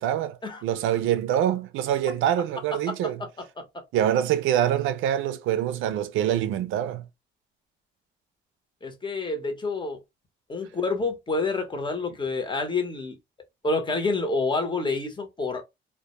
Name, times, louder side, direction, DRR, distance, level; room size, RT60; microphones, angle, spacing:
voice 1, 0.0-3.2 3.9-7.1, right 11 dB, 85° right, 0.4 m, -25 dB
voice 2, 8.8-10.0 10.5-13.2 13.6-15.6, left 3 dB, 25° left, 0.8 m, -28 dB
2.2 x 2.1 x 2.8 m
cardioid pair, 90°, 20 cm